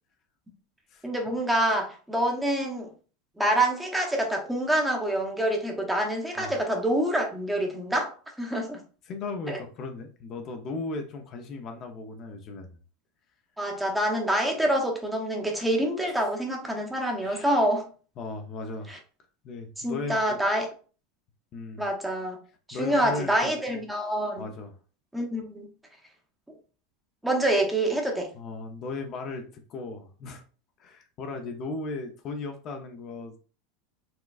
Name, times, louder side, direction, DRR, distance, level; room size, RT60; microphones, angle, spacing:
voice 1, 1.0-2.9 3.4-8.1 8.4-8.8 9.5-9.6 13.6-17.9 18.9-19.0 19.8-20.7 21.8-22.4 22.7-24.4 25.1-25.7 27.2-28.3, right 1 dB, 5° right, 1 dB, 0.8 m, -26 dB
voice 2, 9.0-12.7 17.2-17.6 18.2-18.9 19.4-20.2 21.5-21.8 22.7-23.5 24.4-24.7 28.3-30.4 30.8-33.3, left 3 dB, 40° left, 4 dB, 0.6 m, -36 dB
4.2 x 2.2 x 2.4 m, 0.39 s
supercardioid pair, 125°, 0 cm